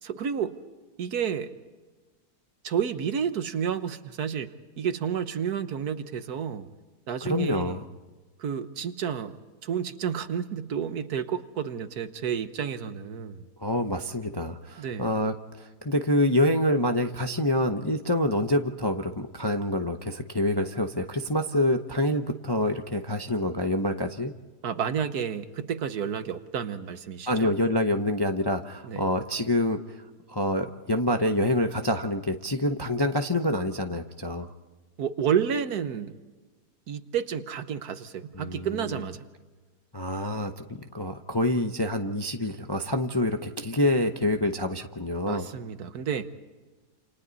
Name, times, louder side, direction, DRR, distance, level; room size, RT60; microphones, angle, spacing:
voice 1, 0.0-0.6 1.0-1.5 2.6-6.7 7.1-7.8 8.4-13.5 14.8-15.1 24.6-27.5 28.8-29.0 35.0-36.2 36.9-39.2 45.3-46.3, right 8 dB, 65° right, 10 dB, 1.5 m, -30 dB
voice 2, 7.2-7.8 13.6-24.3 27.3-30.0 30.3-34.5 38.3-39.0 39.9-40.5 40.8-45.5, left 1 dB, 20° left, 5 dB, 0.6 m, -26 dB
29.0 x 28.0 x 4.1 m, 1.3 s
omnidirectional pair, 1.8 m